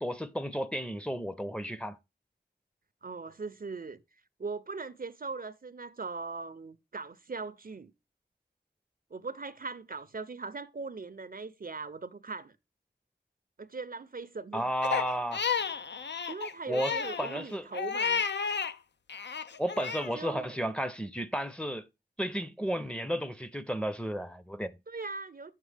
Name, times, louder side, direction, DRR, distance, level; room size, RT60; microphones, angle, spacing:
voice 1, 0.0-2.0 14.5-15.4 16.7-17.6 19.6-21.9 22.2-24.7, equal, 5° left, 0.6 m, -33 dB
voice 2, 3.0-4.0 4.4-7.9 9.1-12.6 13.6-14.7 16.3-18.2 20.1-20.6 24.9-25.5, right 4 dB, 55° right, 0.5 m, -40 dB
Crying sobbing, 14.8-18.7 19.1-20.1, left 6 dB, 75° left, 0.5 m, -32 dB
9.0 x 7.3 x 3.3 m
wide cardioid pair, 55°, 18 cm